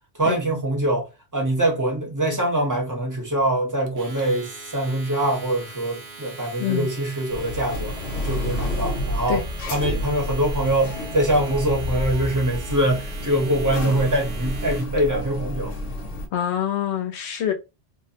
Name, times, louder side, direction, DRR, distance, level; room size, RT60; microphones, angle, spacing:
voice 1, 0.2-1.1 1.3-8.0 8.2-9.4 9.7-15.7, right 1 dB, 20° right, 0.5 m, -23 dB
Domestic sounds home sounds, 3.9-15.0, right 4 dB, 65° right, 0.8 m, -41 dB
sound 1, 7.3-16.3, equal, 90° left, 1.1 m, -30 dB
sound 2, 9.4-12.7, left 3 dB, 40° left, 0.4 m, -36 dB
voice 2, 16.3-17.5, left 10 dB, 70° left, 0.8 m, -25 dB
2.6 x 2.0 x 2.6 m
omnidirectional pair, 1.3 m